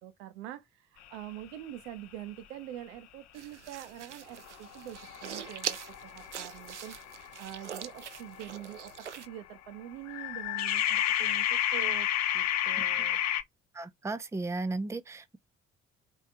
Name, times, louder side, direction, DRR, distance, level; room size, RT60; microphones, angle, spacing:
voice 1, 0.0-12.1 12.3-13.2, right 13 dB, 65° right, 1.0 m, -45 dB
sound 1, 3.3-9.3, right 9 dB, 85° right, 0.5 m, -42 dB
sound 2, 4.4-9.0 10.1-13.4, left 11 dB, 50° left, 0.9 m, -31 dB
voice 2, 13.7-15.4, right 3 dB, 10° right, 0.7 m, -35 dB
4.4 x 4.4 x 4.8 m
figure-of-eight pair, 50°, 34 cm